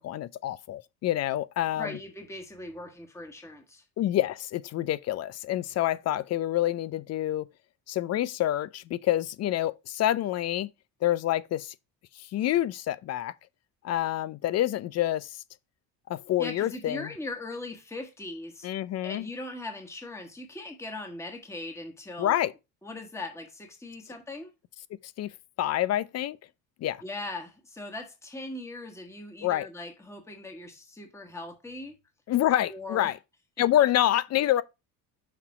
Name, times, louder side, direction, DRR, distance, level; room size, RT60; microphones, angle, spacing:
voice 1, 0.0-2.0 4.0-7.5 7.9-10.7 11.0-11.7 12.1-13.3 13.8-15.4 16.1-17.1 18.6-19.3 22.2-22.5 25.2-25.3 25.6-26.4 26.8-27.0 29.4-29.7 32.3-33.2 33.6-34.6, left 13 dB, 35° left, 0.4 m, -27 dB
voice 2, 1.8-3.8 16.4-18.7 19.0-22.4 22.8-24.5 27.0-31.9 32.7-33.2 33.6-33.7, left 2 dB, 5° left, 1.5 m, -39 dB
5.8 x 4.1 x 4.8 m
hypercardioid pair, 60°, 49 cm